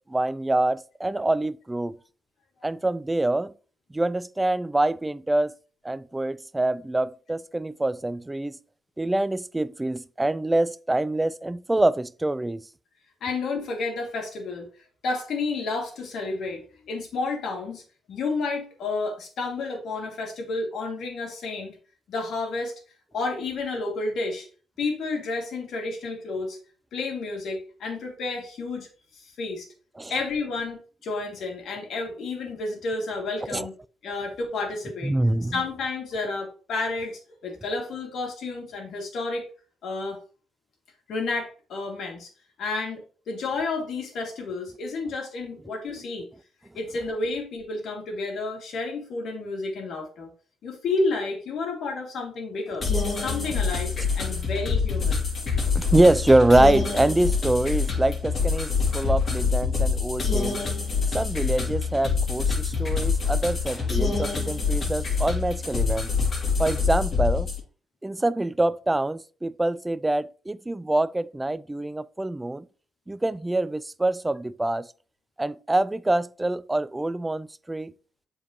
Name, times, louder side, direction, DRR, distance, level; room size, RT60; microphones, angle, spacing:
voice 1, 0.1-2.0 2.6-3.5 3.9-5.5 5.8-8.6 9.0-12.6 30.0-30.1 33.5-33.7 35.0-35.6 55.7-60.6 61.1-66.1 66.6-67.5 68.0-72.6 73.1-74.9 75.4-77.9, right 2 dB, 15° right, 0.3 m, -25 dB
voice 2, 13.2-14.7 15.0-17.8 18.1-21.8 22.1-22.7 23.1-24.5 24.8-26.6 26.9-28.9 29.1-29.7 30.1-33.7 34.0-35.1 35.5-39.5 39.8-40.2 41.1-42.3 42.6-46.3 46.7-50.3 50.6-52.9 53.2-55.2, left 3 dB, 70° left, 2.3 m, -31 dB
sound 1, 52.8-67.6, left 5 dB, 40° left, 2.5 m, -25 dB
7.9 x 4.6 x 3.0 m
cardioid pair, 90°, 0 cm